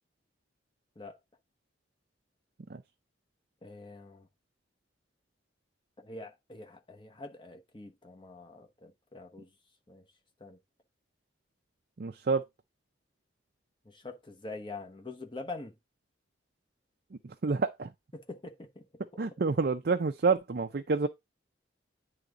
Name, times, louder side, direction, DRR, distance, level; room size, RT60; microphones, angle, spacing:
voice 1, 3.6-4.3 6.0-9.5 9.9-10.0 10.4-10.6 13.8-15.7 18.1-18.9 19.1-19.2, left 3 dB, 25° left, 1.0 m, -45 dB
voice 2, 12.0-12.4 17.4-17.9 19.2-21.1, right 4 dB, 50° right, 0.5 m, -28 dB
9.7 x 3.5 x 3.8 m
head